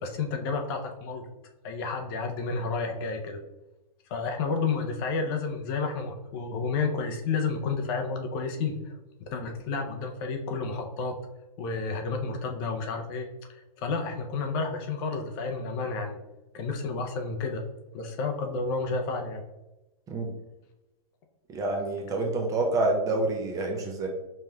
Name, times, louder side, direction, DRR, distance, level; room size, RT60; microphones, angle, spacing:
voice 1, 0.0-1.3 1.6-3.4 4.1-11.2 11.6-16.2 16.5-17.6 17.9-19.4, left 4 dB, 40° left, 4 dB, 0.6 m, -31 dB
voice 2, 21.5-24.1, right 2 dB, 15° right, 1 dB, 0.5 m, -27 dB
5.4 x 3.1 x 2.3 m, 0.99 s
hypercardioid pair, 145°, 20 cm